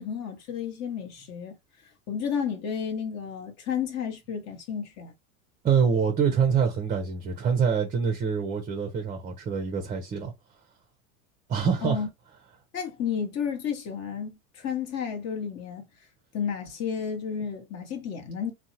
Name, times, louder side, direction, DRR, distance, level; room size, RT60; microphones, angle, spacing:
voice 1, 0.0-1.6 2.1-5.1 11.8-12.1 12.7-15.8 16.3-18.5, left 7 dB, 40° left, 0.9 m, -32 dB
voice 2, 5.6-10.3 11.5-12.0, right 6 dB, 20° right, 0.5 m, -25 dB
2.6 x 2.1 x 2.7 m
supercardioid pair, 105°, 41 cm